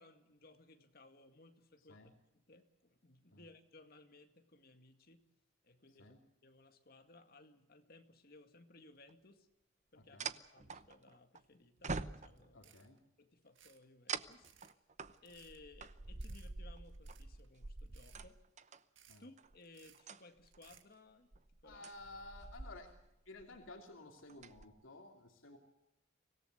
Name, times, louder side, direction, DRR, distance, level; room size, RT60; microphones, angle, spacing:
voice 1, 0.0-5.2 5.6-9.5 9.9-12.7 13.2-14.5 15.2-18.4 19.2-21.9, left 2 dB, 50° left, 7 dB, 2.0 m, -61 dB
sound 1, 9.1-9.2 10.2-11.4 11.8-12.7 14.1-18.8 19.4-19.6 19.9-20.7 21.3-23.1 23.4-23.7 24.2-24.7, right 4 dB, 35° right, 0.8 m, -46 dB
voice 2, 9.9-10.3 12.5-13.0 19.1-19.3 21.6-23.0 23.2-25.6, left 2 dB, 90° left, 2 dB, 2.8 m, -54 dB
sound 2, 12.3-12.4 12.6-13.0 13.5-13.8 14.2-14.7 15.2-15.6 16.2-16.5 16.9-17.5 17.8-18.2 18.7-19.2 19.6-20.0 20.5-20.9, right 9 dB, 75° right, 2.0 m, -64 dB
25.0 x 17.5 x 8.0 m, 0.90 s
head